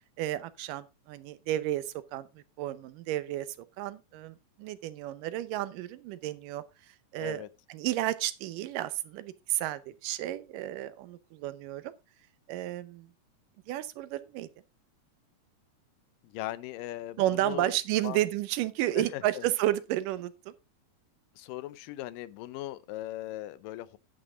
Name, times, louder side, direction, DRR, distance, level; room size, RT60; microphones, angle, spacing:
voice 1, 0.2-3.5 3.8-6.6 7.1-7.4 7.7-11.9 12.5-13.1 13.7-14.5 17.2-20.5, right 14 dB, 85° right, 2.4 m, -32 dB
voice 2, 7.2-7.5 16.2-17.7 18.0-18.2 19.0-19.5 21.4-24.0, left 15 dB, 90° left, 2.4 m, -39 dB
10.5 x 8.7 x 3.7 m
omnidirectional pair, 3.8 m